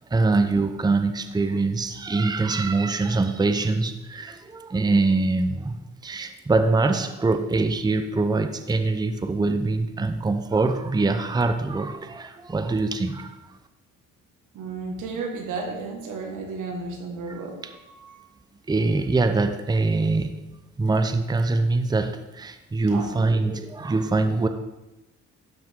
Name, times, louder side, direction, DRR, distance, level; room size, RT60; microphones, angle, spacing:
voice 1, 0.1-13.4 17.3-17.4 18.7-20.3 20.8-24.5, right 3 dB, 15° right, 8 dB, 0.7 m, -23 dB
voice 2, 14.5-18.2 22.8-23.2, right 4 dB, 85° right, 2 dB, 1.8 m, -33 dB
12.0 x 6.0 x 3.7 m, 1.0 s
cardioid pair, 90°, 30 cm